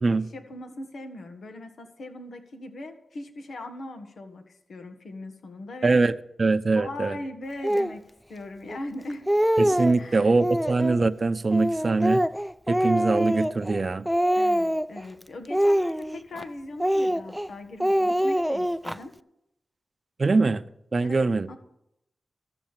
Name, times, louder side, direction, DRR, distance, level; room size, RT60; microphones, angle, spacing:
voice 1, 0.1-6.0 6.7-8.0 8.3-9.3 9.9-10.4 14.3-19.2 21.0-21.6, left 2 dB, 80° left, 6 dB, 1.6 m, -40 dB
voice 2, 5.8-6.1 6.4-7.2 9.6-12.2 12.7-14.0 20.2-20.6 20.9-21.5, right 3 dB, 50° right, 12 dB, 0.7 m, -23 dB
Speech, 7.6-8.0 8.7-8.8 9.1-10.0 10.4-11.0 11.5-13.8 14.1-15.0 15.5-16.4 16.8-17.5 17.8-19.0, equal, ahead, 0.5 m, -24 dB
13.5 x 7.1 x 7.4 m, 0.79 s
cardioid pair, 40°, 0 cm